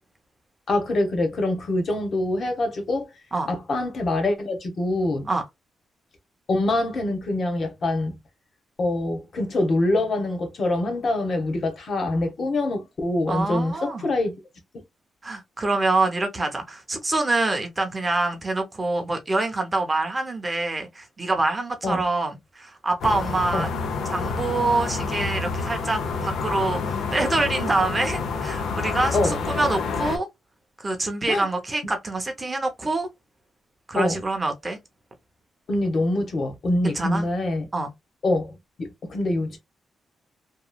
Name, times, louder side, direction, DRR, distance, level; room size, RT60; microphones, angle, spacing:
voice 1, 0.7-3.1 3.5-5.3 6.5-8.2 8.8-14.4 21.8-22.1 23.5-23.7 29.1-29.4 31.3-31.5 33.9-34.2 35.7-37.6 38.2-39.6, left 2 dB, 45° left, 0.9 m, -25 dB
voice 2, 13.3-14.1 15.2-23.7 24.1-29.2 29.5-30.3 30.8-33.1 33.9-34.8 36.8-37.3 37.7-37.9, right 2 dB, 20° right, 0.6 m, -25 dB
sound 1, 23.0-30.2, left 4 dB, 85° left, 0.6 m, -28 dB
2.9 x 2.3 x 2.2 m
cardioid pair, 135°, 0 cm